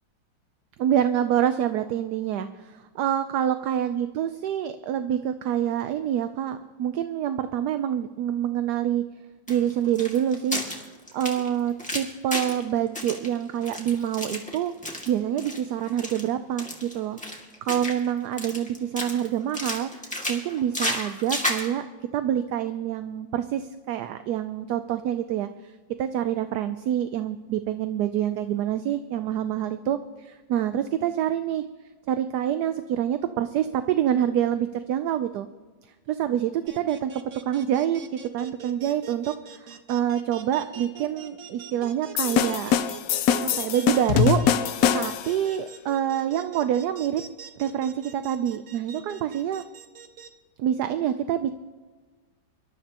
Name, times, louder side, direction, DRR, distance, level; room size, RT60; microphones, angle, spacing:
voice 1, 0.8-9.0 9.5-10.6 11.1-14.7 15.1-17.2 17.6-21.8 22.1-25.7 26.0-31.6 32.1-35.5 36.1-37.1 37.5-42.7 43.4-47.2 47.6-49.6 50.6-51.5, right 10 dB, 70° right, 10 dB, 1.1 m, -26 dB
sound 1, 9.5-12.6 12.9-15.1 15.4-15.6 15.9-16.2 16.6-18.1 18.4-19.3 19.5-21.7, left 1 dB, 5° left, 1.8 m, -32 dB
sound 2, 36.7-50.3, right 7 dB, 55° right, 1.3 m, -43 dB
sound 3, 42.2-45.4, left 9 dB, 70° left, 0.8 m, -23 dB
24.5 x 12.5 x 2.9 m, 1.3 s
omnidirectional pair, 2.0 m